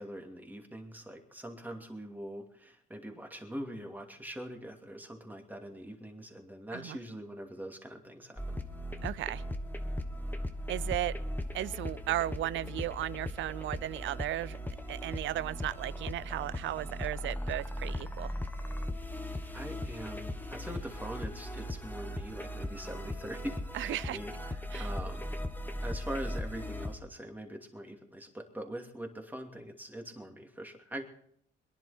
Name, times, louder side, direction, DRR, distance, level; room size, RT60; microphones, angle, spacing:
voice 1, 0.0-8.6 19.5-25.2 25.8-31.0, right 1 dB, 10° right, 3 dB, 2.7 m, -43 dB
sound 1, 8.4-26.9, left 1 dB, 10° left, 1.4 m, -38 dB
voice 2, 9.0-9.4 10.7-11.2 11.5-14.6 14.9-18.3 23.7-24.2 24.7-24.9, right 14 dB, 75° right, 21 dB, 0.5 m, -35 dB
22.5 x 11.0 x 4.4 m, 0.66 s
cardioid pair, 90°, 20 cm